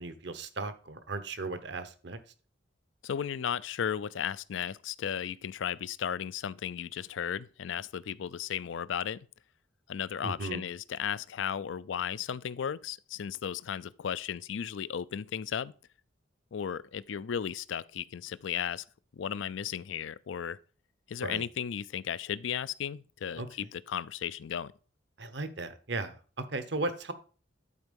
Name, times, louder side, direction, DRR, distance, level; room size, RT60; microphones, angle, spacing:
voice 1, 0.0-2.2 10.2-10.6 21.2-21.4 23.4-23.5 25.2-27.1, right 2 dB, 60° right, 0.9 m, -36 dB
voice 2, 3.0-9.3 9.9-15.7 16.5-18.8 19.1-20.6 21.1-24.7, left 8 dB, 75° left, 0.4 m, -35 dB
11.0 x 4.6 x 5.2 m
head